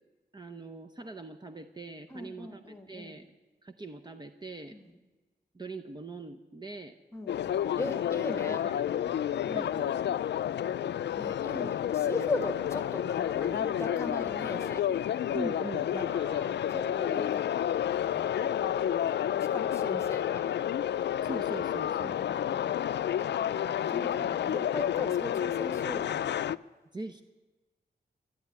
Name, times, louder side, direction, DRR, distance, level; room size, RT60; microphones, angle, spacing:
voice 1, 0.3-3.3 3.6-4.8 5.5-7.0 8.5-10.2 15.3-16.2 19.8-20.2 21.2-22.2 26.9-27.2, right 2 dB, 25° right, 7 dB, 0.7 m, -42 dB
voice 2, 2.1-3.1 4.7-4.8 7.1-7.4 7.7-8.6 9.5-9.7 11.2-14.9 16.0-20.5 22.0-22.8 23.5-26.4, left 2 dB, 15° left, 7 dB, 1.5 m, -39 dB
sound 1, 7.3-26.6, left 10 dB, 85° left, 0.4 m, -30 dB
12.5 x 11.5 x 9.6 m, 1.2 s
wide cardioid pair, 140°, 18 cm